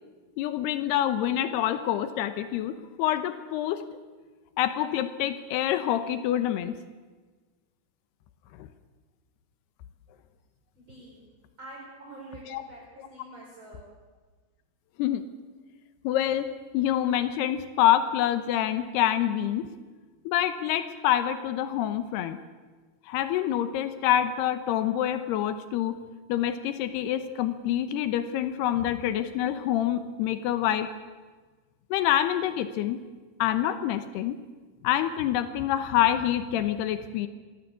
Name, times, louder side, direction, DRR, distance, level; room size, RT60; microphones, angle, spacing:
voice 1, 0.4-3.8 4.6-6.8 8.6-8.7 12.5-12.6 15.0-15.2 16.0-16.5 16.7-19.7 20.3-22.4 23.1-25.9 26.3-30.9 31.9-33.0 33.4-34.4 34.8-37.3, left 11 dB, 90° left, 10 dB, 3.0 m, -26 dB
voice 2, 10.8-11.2 11.6-13.8, right 2 dB, 30° right, -4 dB, 5.2 m, -46 dB
26.0 x 19.0 x 8.3 m, 1.4 s
omnidirectional pair, 4.6 m